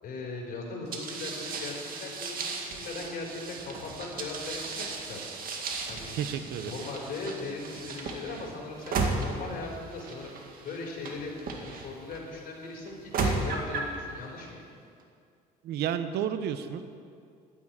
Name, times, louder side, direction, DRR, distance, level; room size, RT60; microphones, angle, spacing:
voice 1, 0.0-5.2 5.9-6.2 6.6-11.3 11.6-14.6, left 3 dB, 60° left, -1 dB, 4.3 m, -39 dB
sound 1, 0.9-12.2 12.9-14.0, right 4 dB, 60° right, 1.9 m, -35 dB
voice 2, 6.1-6.8 15.6-16.8, right 9 dB, 75° right, 10 dB, 0.9 m, -31 dB
11.5 x 10.0 x 8.9 m, 2.4 s
cardioid pair, 110°, 17 cm